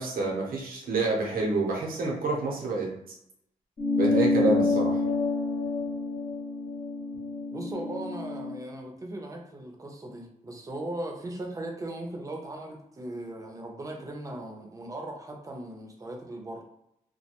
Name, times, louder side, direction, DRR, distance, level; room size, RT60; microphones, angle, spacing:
voice 1, 0.0-2.9 4.0-5.0, right 3 dB, 85° right, -1 dB, 0.7 m, -28 dB
sound 1, 3.8-8.6, left 3 dB, 30° left, 0.3 m, -28 dB
voice 2, 7.5-16.6, right 1 dB, 25° right, 1 dB, 0.5 m, -38 dB
2.3 x 2.1 x 2.8 m, 0.79 s
wide cardioid pair, 130°, 15 cm